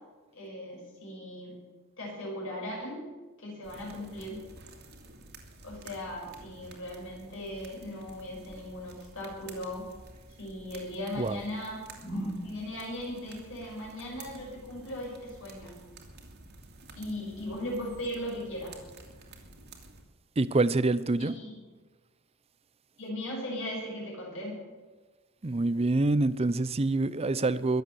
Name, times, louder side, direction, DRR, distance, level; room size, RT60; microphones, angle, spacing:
voice 1, 0.3-1.5 2.0-3.0 3.4-4.4 5.6-9.9 10.4-15.8 16.9-18.8 21.2-21.6 23.0-24.6, left 1 dB, 60° left, 6.9 m, -38 dB
sound 1, 3.6-20.0, right 2 dB, 50° right, 2.4 m, -51 dB
voice 2, 20.4-21.3 25.4-27.8, right 2 dB, 25° right, 0.6 m, -26 dB
22.0 x 8.0 x 7.1 m
head